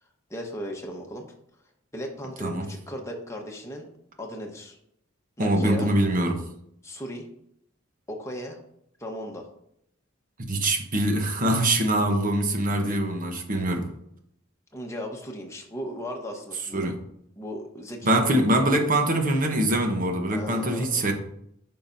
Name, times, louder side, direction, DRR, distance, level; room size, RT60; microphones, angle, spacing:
voice 1, 0.3-1.3 1.9-3.9 4.2-4.8 5.4-5.9 6.8-7.3 8.1-8.6 9.0-9.5 14.7-16.9 17.4-18.4 20.3-21.0, equal, 15° left, 1 dB, 1.2 m, -36 dB
voice 2, 5.4-6.4 10.5-13.9 16.7-16.9 18.0-21.1, right 1 dB, 45° right, 4 dB, 1.1 m, -23 dB
9.4 x 5.7 x 2.7 m, 0.74 s
head